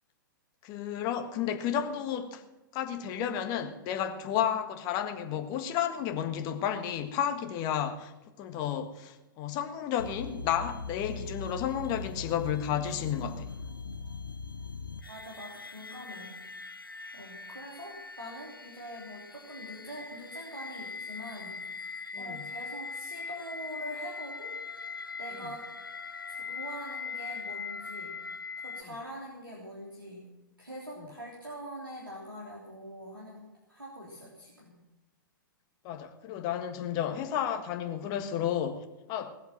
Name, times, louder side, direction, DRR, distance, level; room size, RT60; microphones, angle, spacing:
voice 1, 0.6-2.4 2.7-8.1 8.4-13.5 22.1-22.5 35.8-39.4, left 9 dB, 35° left, 1.6 m, -32 dB
sound 1, 10.0-28.8, left 5 dB, 85° left, 0.8 m, -41 dB
voice 2, 15.1-16.4 17.1-24.9 25.2-25.6 26.3-28.2 28.6-30.3 30.6-33.4 33.7-34.7 36.3-36.4, equal, 90° right, 3.4 m, -44 dB
19.0 x 7.9 x 7.6 m
figure-of-eight pair, 105°, 11 cm